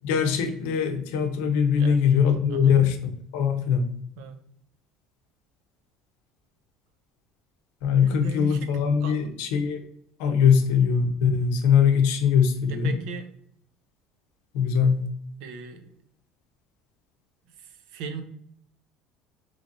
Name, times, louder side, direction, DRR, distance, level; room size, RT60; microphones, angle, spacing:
voice 1, 0.0-3.0 3.3-3.9 7.8-9.8 10.2-12.9 14.5-15.1, left 7 dB, 85° left, 5 dB, 0.7 m, -21 dB
voice 2, 1.8-2.2 2.5-2.8 4.2-4.4 8.0-8.7 9.0-9.3 12.7-13.3 15.4-15.9 17.5-18.2, right 5 dB, 60° right, 7 dB, 0.5 m, -38 dB
4.0 x 3.2 x 2.5 m, 0.70 s
cardioid pair, 180°, 0 cm